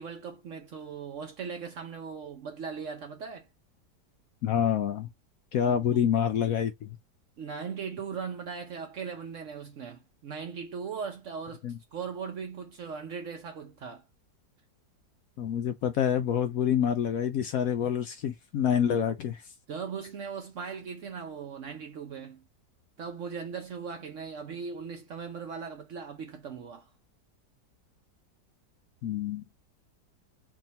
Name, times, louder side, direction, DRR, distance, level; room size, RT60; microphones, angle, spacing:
voice 1, 0.0-3.5 5.6-6.1 7.4-14.0 19.7-22.4 23.0-26.9, right 6 dB, 60° right, 0.8 m, -39 dB
voice 2, 4.4-5.1 5.5-7.0 11.6-11.8 15.4-19.4 29.0-29.4, left 9 dB, 70° left, 0.8 m, -27 dB
3.6 x 2.6 x 4.0 m
omnidirectional pair, 1.9 m